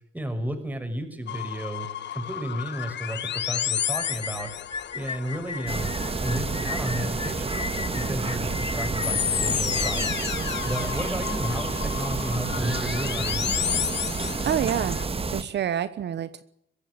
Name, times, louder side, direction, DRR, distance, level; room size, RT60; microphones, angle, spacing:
voice 1, 0.1-3.2 3.5-4.5 4.9-5.9 6.2-7.5 7.9-10.2 10.6-13.5, right 1 dB, 10° right, 6 dB, 6.4 m, -32 dB
sound 1, 1.3-15.1, left 10 dB, 65° left, 1.3 m, -32 dB
sound 2, 3.9-11.3, left 4 dB, 25° left, 1.0 m, -36 dB
sound 3, 5.7-15.4, right 4 dB, 30° right, 1.9 m, -30 dB
voice 2, 14.4-15.0 15.3-16.4, right 9 dB, 60° right, 13 dB, 1.1 m, -27 dB
22.0 x 16.5 x 9.9 m, 0.77 s
cardioid pair, 90°, 20 cm